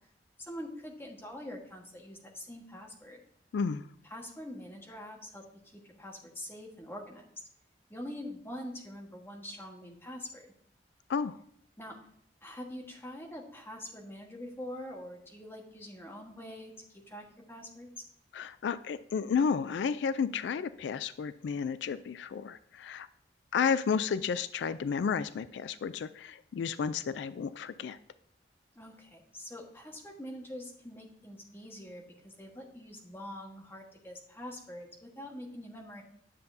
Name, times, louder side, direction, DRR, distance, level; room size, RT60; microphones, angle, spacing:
voice 1, 0.5-3.2 4.0-5.4 5.7-7.4 7.9-10.5 11.8-12.0 12.4-17.9 28.7-36.0, left 1 dB, 15° left, 0 dB, 1.3 m, -44 dB
voice 2, 3.5-3.9 11.1-11.4 18.3-23.1 23.5-28.0, left 6 dB, 80° left, 14 dB, 0.3 m, -32 dB
9.9 x 6.9 x 2.7 m, 0.70 s
head